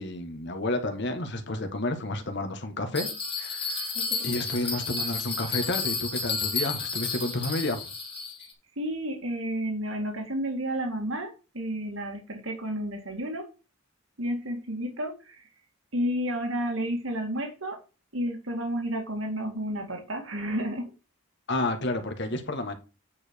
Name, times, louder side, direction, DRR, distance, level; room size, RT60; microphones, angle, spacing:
voice 1, 0.0-3.1 3.4-3.9 4.2-7.8 21.5-22.7, left 2 dB, 55° left, 1.8 m, -30 dB
Bell, 2.9-8.5, left 4 dB, 25° left, 2.3 m, -32 dB
voice 2, 8.8-13.5 14.2-15.5 15.9-17.8 18.1-20.9, equal, 70° right, 2.0 m, -31 dB
9.5 x 5.1 x 4.7 m
head